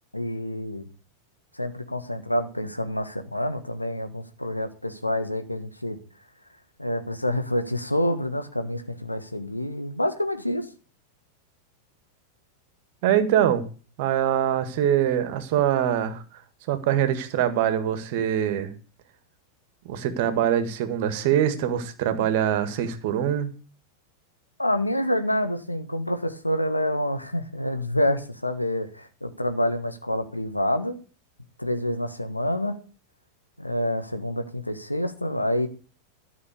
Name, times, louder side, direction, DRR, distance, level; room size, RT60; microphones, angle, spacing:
voice 1, 0.1-0.8 1.5-6.0 6.8-10.7 24.6-31.0 31.6-32.7 33.6-35.7, left 1 dB, 85° left, 8 dB, 1.4 m, -27 dB
voice 2, 13.0-13.6 14.0-16.4 16.7-18.7 19.8-23.5, right 10 dB, 50° right, 11 dB, 1.7 m, -23 dB
13.0 x 6.0 x 8.3 m, 0.37 s
figure-of-eight pair, 90°, 0 cm